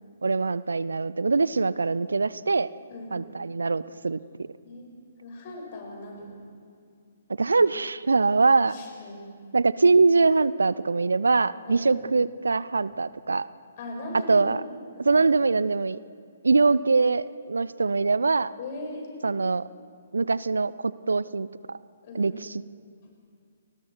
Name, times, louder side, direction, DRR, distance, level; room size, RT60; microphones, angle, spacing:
voice 1, 0.2-2.7 3.1-4.5 7.4-8.8 9.5-13.5 14.3-14.6 15.0-16.0 16.4-18.5 19.2-19.6 20.1-21.8 22.1-22.5, right 4 dB, 70° right, 18 dB, 0.5 m, -23 dB
voice 2, 4.6-6.4 8.6-9.2 11.7-11.9 13.8-14.5 14.9-15.2 18.6-19.1 22.0-22.4, left 2 dB, 40° left, 1 dB, 6.1 m, -39 dB
29.5 x 20.5 x 4.6 m, 2.2 s
figure-of-eight pair, 130°, 0 cm